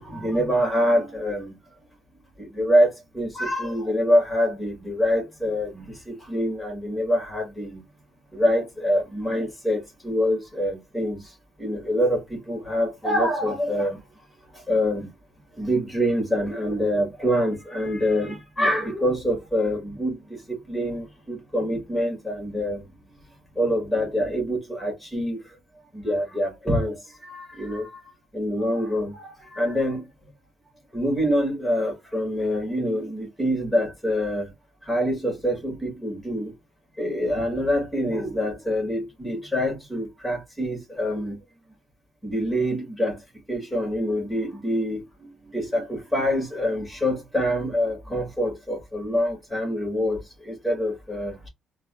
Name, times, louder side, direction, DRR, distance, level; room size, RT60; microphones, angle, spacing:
voice 1, 0.0-1.6 2.4-7.8 8.3-11.3 11.6-14.0 14.5-15.1 15.6-22.8 23.6-25.4 25.9-28.0 28.3-30.0 30.9-34.5 34.8-36.5 37.0-41.4 42.2-43.2 43.5-51.5, equal, 5° left, 2.2 m, -25 dB
4.0 x 2.4 x 2.7 m
cardioid pair, 100°, 0 cm